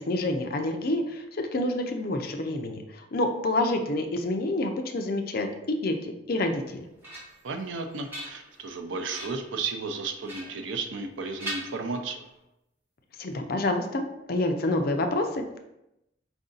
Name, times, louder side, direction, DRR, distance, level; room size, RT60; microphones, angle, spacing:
voice 1, 0.0-6.9 13.2-14.0 14.3-15.6, left 2 dB, 50° left, 5 dB, 0.5 m, -28 dB
sound 1, 6.5-7.5 7.9-8.7 9.1-9.5 10.3-11.1 11.4-12.3, right 1 dB, 10° right, 1.3 m, -40 dB
voice 2, 7.4-12.2, right 4 dB, 80° right, 6 dB, 0.5 m, -33 dB
4.7 x 2.6 x 3.8 m, 0.87 s
head